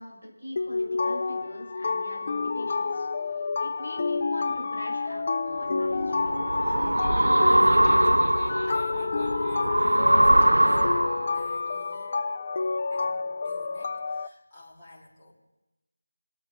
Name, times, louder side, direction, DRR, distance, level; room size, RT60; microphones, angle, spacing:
voice 1, 0.0-6.4, left 1 dB, 85° left, -2 dB, 5.0 m, -42 dB
sound 1, 0.6-14.3, left 4 dB, 35° left, 0.3 m, -29 dB
sound 2, 5.6-11.4, right 1 dB, 75° right, 0.4 m, -22 dB
Laughter, 6.3-11.5, right 1 dB, 5° right, 3.0 m, -48 dB
voice 2, 7.2-12.1 12.9-15.3, left 2 dB, 20° left, -7 dB, 3.4 m, -49 dB
23.5 x 8.4 x 3.9 m, 1.0 s
figure-of-eight pair, 165°, 0 cm